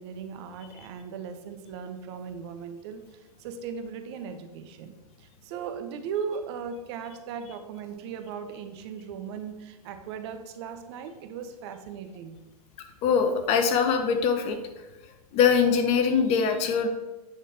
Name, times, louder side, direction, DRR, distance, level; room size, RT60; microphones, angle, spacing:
voice 1, 0.0-3.0 3.4-4.9 5.2-12.4, right 6 dB, 40° right, 8 dB, 0.8 m, -37 dB
voice 2, 13.0-14.6 15.3-16.9, left 6 dB, 30° left, 7 dB, 0.9 m, -22 dB
8.6 x 5.1 x 4.3 m, 1.1 s
hypercardioid pair, 115°, 20 cm